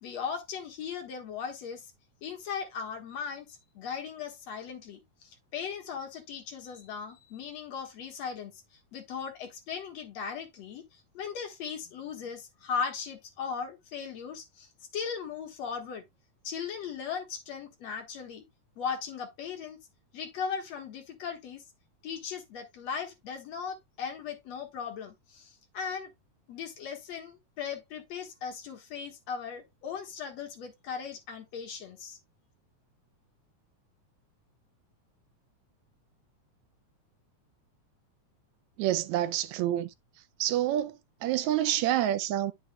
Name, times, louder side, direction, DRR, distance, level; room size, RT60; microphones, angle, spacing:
voice 1, 0.0-1.9 2.2-16.0 16.4-18.4 18.8-19.8 20.1-21.6 22.0-26.1 26.5-32.2, left 6 dB, 65° left, 2.5 m, -38 dB
voice 2, 38.8-39.9 40.4-42.5, right 12 dB, 80° right, 1.8 m, -28 dB
10.0 x 6.4 x 2.2 m
omnidirectional pair, 3.4 m